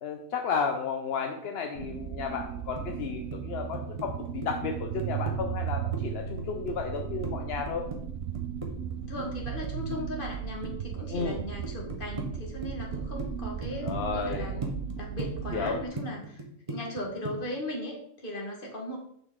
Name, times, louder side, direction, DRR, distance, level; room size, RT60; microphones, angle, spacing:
voice 1, 0.0-7.8 11.1-11.4 13.8-14.6 15.5-15.8, left 5 dB, 55° left, 4 dB, 0.8 m, -33 dB
sound 1, 1.8-15.9, right 8 dB, 65° right, 0.9 m, -36 dB
sound 2, 2.8-3.4 3.7-5.4 5.7-7.3 7.7-10.4 10.6-11.3 11.6-12.3 12.6-13.3 13.6-13.9 14.3-17.0 17.2-17.5, right 3 dB, 25° right, 0.9 m, -38 dB
voice 2, 9.0-19.0, left 1 dB, 35° left, -1 dB, 1.8 m, -38 dB
6.8 x 6.2 x 3.7 m, 0.69 s
omnidirectional pair, 1.5 m